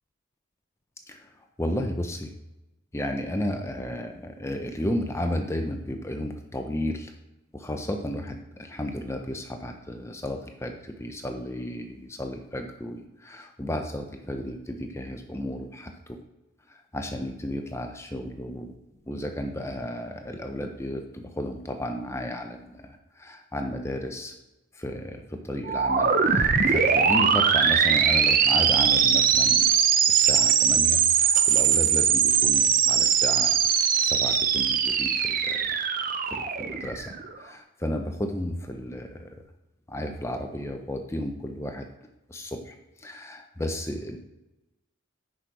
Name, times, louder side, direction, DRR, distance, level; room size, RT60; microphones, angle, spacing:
voice 1, 1.6-2.3 2.9-7.1 7.5-15.9 16.9-18.8 19.1-24.3 24.7-29.7 30.1-33.6 34.0-35.6 36.3-37.0 37.4-39.3 39.9-41.9 42.3-44.2, left 1 dB, 15° left, 4 dB, 0.6 m, -33 dB
sound 1, 25.7-37.3, right 7 dB, 40° right, 0.5 m, -21 dB
6.4 x 6.0 x 4.7 m, 0.96 s
head